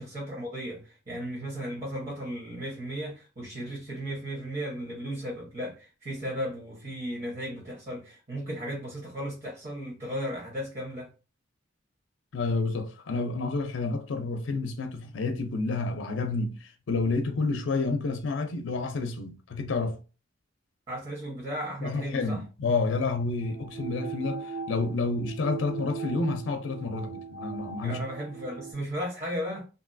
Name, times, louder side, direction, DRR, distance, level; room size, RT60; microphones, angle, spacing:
voice 1, 0.0-11.1 20.9-22.4 27.8-29.7, equal, 40° right, 1.0 m, -35 dB
voice 2, 12.3-20.0 21.8-28.0, left 3 dB, 75° left, 0.5 m, -29 dB
sound 1, 23.4-28.7, right 7 dB, 65° right, 0.8 m, -39 dB
2.9 x 2.6 x 2.5 m
head